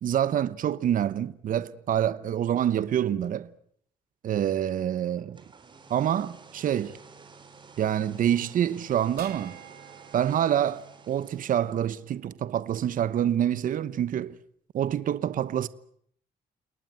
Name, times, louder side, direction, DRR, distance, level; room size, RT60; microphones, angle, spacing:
voice 1, 0.0-3.5 4.2-5.4 5.9-7.0 7.8-9.6 10.1-14.4 14.7-15.7, right 10 dB, 55° right, 1.0 m, -26 dB
sound 1, 5.2-11.9, right 4 dB, 30° right, 3.3 m, -51 dB
sound 2, 9.2-11.7, right 11 dB, 80° right, 3.2 m, -49 dB
30.0 x 19.0 x 9.2 m
cardioid pair, 145°, 16 cm